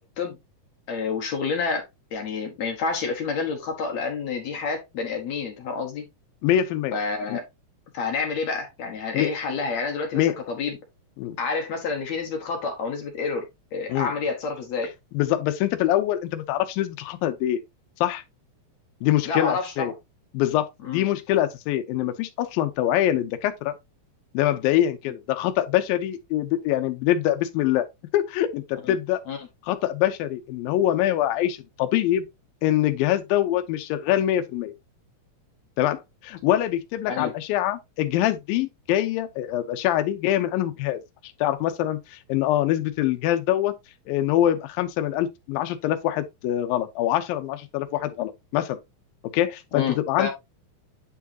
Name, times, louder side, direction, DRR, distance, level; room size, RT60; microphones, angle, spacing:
voice 1, 0.9-1.9 2.1-6.0 6.9-7.4 7.9-10.8 11.4-14.9 19.2-19.9 20.8-21.0 28.8-28.9 29.3-29.4 37.1-37.3 49.7-50.3, left 4 dB, 60° left, 2.2 m, -29 dB
voice 2, 6.4-7.0 7.3-7.4 9.1-9.3 10.1-10.4 11.2-11.4 13.9-14.1 15.1-17.6 18.0-18.2 19.0-19.9 20.3-23.7 24.3-27.9 28.1-29.2 29.7-32.3 32.6-34.7 35.8-41.0 41.4-43.7 44.1-48.8 49.3-50.3, left 12 dB, 85° left, 2.5 m, -24 dB
9.1 x 4.6 x 2.8 m
omnidirectional pair, 4.0 m